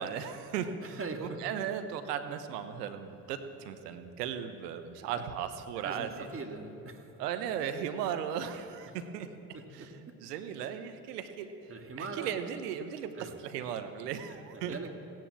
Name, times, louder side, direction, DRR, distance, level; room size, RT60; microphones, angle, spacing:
voice 1, 0.0-6.3 7.2-9.3 9.7-11.5 12.0-14.7, right 8 dB, 75° right, 8 dB, 1.2 m, -37 dB
voice 2, 0.8-1.4 5.1-5.3 5.8-7.1 8.9-9.0 9.5-10.2 11.7-12.3 13.1-13.4 14.3-15.0, right 3 dB, 25° right, 4 dB, 2.1 m, -42 dB
16.0 x 10.5 x 7.5 m, 2.9 s
hypercardioid pair, 60°, 47 cm